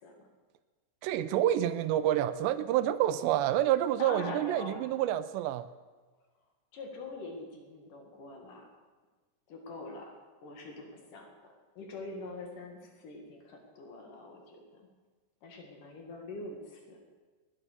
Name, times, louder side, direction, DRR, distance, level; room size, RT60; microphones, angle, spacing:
voice 1, 1.0-5.7, right 12 dB, 90° right, 13 dB, 2.9 m, -28 dB
voice 2, 4.0-5.0 6.7-8.7 9.5-10.1 10.4-11.3 11.8-14.9 15.4-17.0, left 2 dB, 55° left, 2 dB, 3.2 m, -44 dB
19.5 x 10.0 x 6.7 m, 1.3 s
omnidirectional pair, 5.0 m